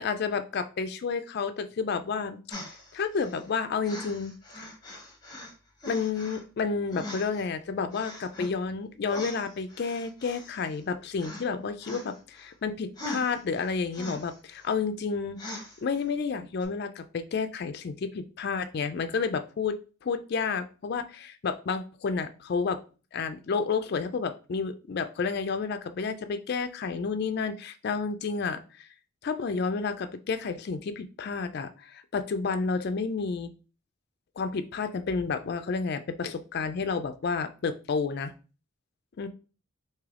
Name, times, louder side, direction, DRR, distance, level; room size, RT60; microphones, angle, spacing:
voice 1, 0.0-2.6 2.9-4.6 5.9-19.8 20.0-22.8 23.1-28.9 29.2-33.5 34.4-38.3 39.2-39.3, left 5 dB, 50° left, 10 dB, 0.3 m, -31 dB
sound 1, 2.5-3.5 3.8-5.5 5.8-6.4 6.9-7.5 7.9-8.5 9.1-10.9 11.2-11.5 11.8-12.5 13.0-14.7 15.4-16.0 16.6-16.7, left 1 dB, 20° left, 0.8 m, -42 dB
3.3 x 2.7 x 3.6 m, 0.35 s
head